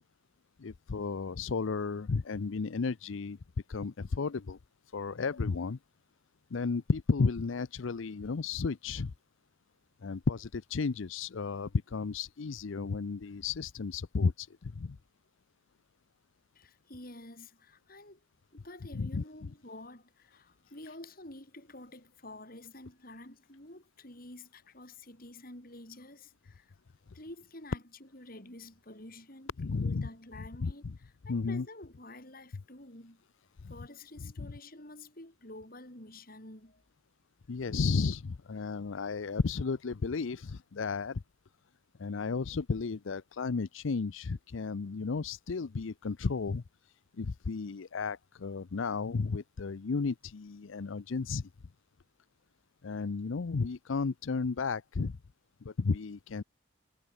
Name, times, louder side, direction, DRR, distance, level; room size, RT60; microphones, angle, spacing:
voice 1, 0.6-3.4 3.7-4.6 4.9-5.8 6.5-9.1 10.0-15.0 18.9-19.2 29.6-30.1 30.6-30.9 31.3-31.7 33.6-33.7 34.4-34.5 37.5-41.2 42.0-46.6 47.2-51.5 52.8-55.2 55.6-56.4, left 4 dB, 75° left, 0.6 m, -33 dB
voice 2, 16.5-18.2 18.5-26.7 27.1-29.5 29.8-33.2 33.7-36.8, left 2 dB, 45° left, 5.7 m, -49 dB
head